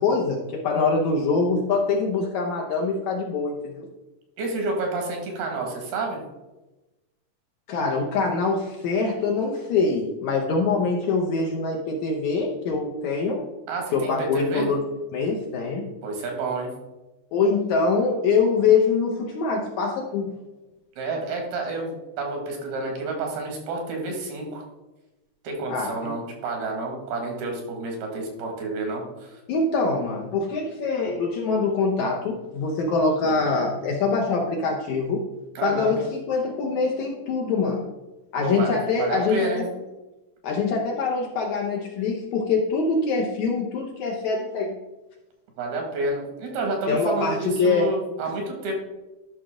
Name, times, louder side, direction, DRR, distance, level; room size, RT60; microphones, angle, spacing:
voice 1, 0.0-3.9 7.7-13.4 13.9-14.8 15.1-15.9 17.3-20.3 25.7-26.2 29.5-35.2 35.6-37.9 38.3-39.7 40.4-44.8 46.9-47.9, left 4 dB, 70° left, 0 dB, 1.8 m, -24 dB
voice 2, 4.4-6.2 13.7-14.7 16.0-16.7 21.0-24.6 25.4-29.4 35.6-35.9 38.4-38.7 39.0-39.7 45.6-48.7, right 2 dB, 90° right, 1 dB, 3.9 m, -29 dB
12.0 x 5.9 x 3.8 m, 1.0 s
omnidirectional pair, 4.3 m